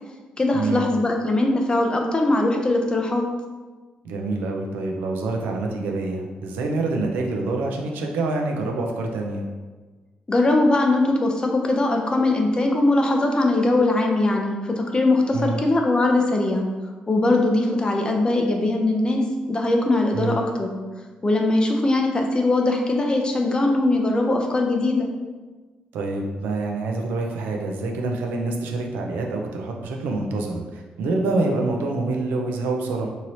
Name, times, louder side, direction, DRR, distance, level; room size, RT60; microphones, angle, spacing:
voice 1, 0.4-3.3 10.3-16.7 17.1-20.7 21.2-25.1, left 2 dB, 30° left, 2 dB, 0.5 m, -21 dB
voice 2, 4.0-9.4 15.3-15.6 20.1-20.4 25.9-33.1, right 2 dB, 90° right, 1 dB, 0.4 m, -26 dB
3.0 x 2.8 x 2.7 m, 1.3 s
cardioid pair, 65°, 3 cm